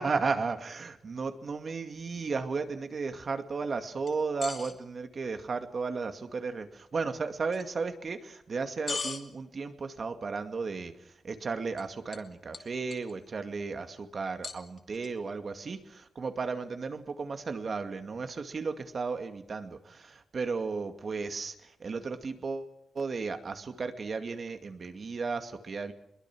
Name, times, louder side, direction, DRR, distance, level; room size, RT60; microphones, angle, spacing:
voice 1, 0.0-25.9, right 4 dB, 45° right, 7 dB, 2.3 m, -34 dB
sound 1, 4.1-4.7 7.5-7.6 8.9-9.2 11.8-11.9 12.1-12.3 12.5-13.1 14.4-15.1, left 4 dB, 45° left, 2.7 m, -37 dB
26.0 x 22.0 x 6.2 m, 0.78 s
wide cardioid pair, 140°, 0 cm